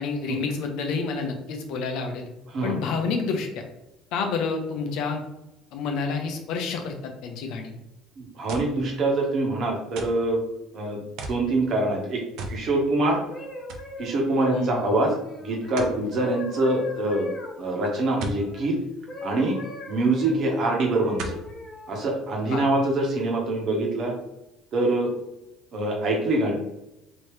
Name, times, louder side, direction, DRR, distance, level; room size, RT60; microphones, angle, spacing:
voice 1, 0.0-2.2 2.6-3.7 4.1-5.2 5.7-7.7 14.5-14.8 22.4-22.6, left 4 dB, 70° left, 4 dB, 0.6 m, -29 dB
voice 2, 8.2-10.4 10.7-12.2 12.5-13.2 14.0-17.3 17.6-18.8 19.2-19.6 19.9-21.4 21.9-24.1 24.7-25.1 25.7-26.6, right 2 dB, 55° right, -1 dB, 1.1 m, -24 dB
sound 1, 8.5-8.8 9.9-10.3 11.2-11.5 12.4-12.6 13.0-13.1 13.7-13.9 15.8-16.0 18.2-18.4 19.9-20.0 21.2-21.5 22.2-22.3, right 2 dB, 70° right, 0.6 m, -35 dB
sound 2, 13.3-18.7 19.1-22.0 22.6-22.9, left 1 dB, 35° left, 1.2 m, -41 dB
3.1 x 2.8 x 3.2 m, 0.92 s
supercardioid pair, 95°, 0 cm